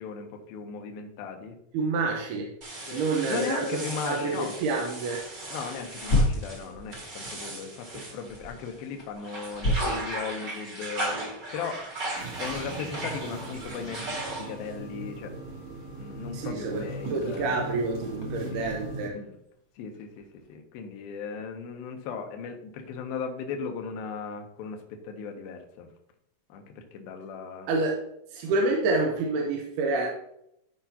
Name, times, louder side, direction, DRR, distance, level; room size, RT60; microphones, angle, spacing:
voice 1, 0.0-1.6 2.9-4.6 5.5-11.2 11.5-11.8 12.4-15.3 16.0-17.6 18.3-18.7 19.1-19.4 19.8-25.9 26.5-27.7, left 6 dB, 75° left, 4 dB, 2.7 m, -37 dB
voice 2, 1.7-2.5 2.9-3.7 4.0-5.3 16.3-16.8 17.1-19.2 27.7-28.0 28.3-30.1, right 3 dB, 85° right, 0 dB, 2.9 m, -28 dB
sound 1, 2.6-8.8 9.2-14.7, right 1 dB, 35° right, 1.5 m, -37 dB
sound 2, 5.1-20.6, left 1 dB, 50° left, 1.2 m, -36 dB
sound 3, 12.1-19.1, right 2 dB, 55° right, 1.8 m, -40 dB
12.5 x 5.1 x 2.9 m, 0.77 s
omnidirectional pair, 4.5 m